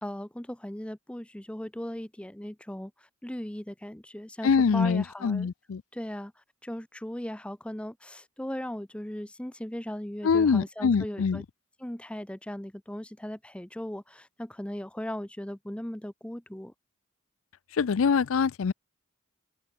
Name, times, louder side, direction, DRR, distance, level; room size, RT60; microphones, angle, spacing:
voice 1, 0.0-5.5 5.9-11.4 11.8-16.7, left 1 dB, 5° left, 0.5 m, -38 dB
voice 2, 4.4-5.8 10.2-11.4 17.7-18.7, left 5 dB, 70° left, 0.4 m, -24 dB
head